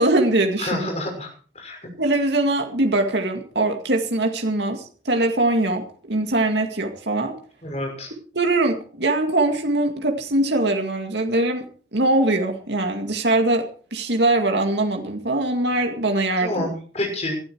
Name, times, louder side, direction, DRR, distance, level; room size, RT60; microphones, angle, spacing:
voice 1, 0.0-0.9 2.0-7.3 8.3-11.6 11.9-13.6 13.9-16.7, right 2 dB, 70° right, 4 dB, 2.2 m, -22 dB
voice 2, 0.6-1.8 7.6-8.1 16.4-17.3, left 1 dB, 35° left, 2 dB, 6.1 m, -28 dB
18.5 x 12.5 x 4.7 m, 0.42 s
head